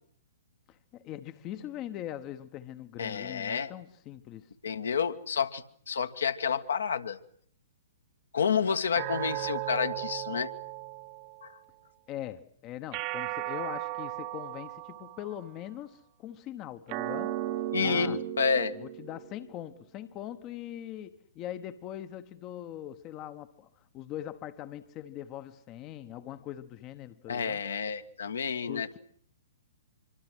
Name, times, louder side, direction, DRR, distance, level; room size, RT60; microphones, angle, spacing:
voice 1, 0.7-4.5 12.1-17.3 17.8-18.2 18.7-27.6 28.7-29.0, left 12 dB, 30° left, 1.1 m, -41 dB
voice 2, 3.0-3.7 4.6-7.2 8.3-10.5 11.4-11.6 17.7-18.7 27.3-28.9, left 6 dB, 65° left, 1.6 m, -29 dB
sound 1, 8.9-11.5 12.9-15.5 16.9-19.5, right 15 dB, 35° right, 1.3 m, -36 dB
25.5 x 25.0 x 6.3 m
figure-of-eight pair, 115°, 0 cm